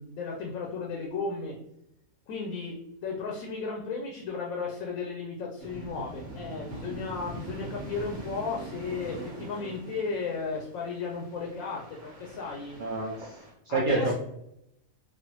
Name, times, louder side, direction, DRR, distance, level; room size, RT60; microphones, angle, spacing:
voice 1, 0.0-1.5 2.3-12.8 13.7-14.1, left 4 dB, 75° left, 0 dB, 1.0 m, -34 dB
sound 1, 5.6-13.5, right 2 dB, 25° right, 1.0 m, -43 dB
voice 2, 12.8-13.3 13.7-14.1, right 3 dB, 60° right, -3 dB, 0.5 m, -27 dB
3.1 x 2.3 x 3.0 m, 0.79 s
omnidirectional pair, 1.5 m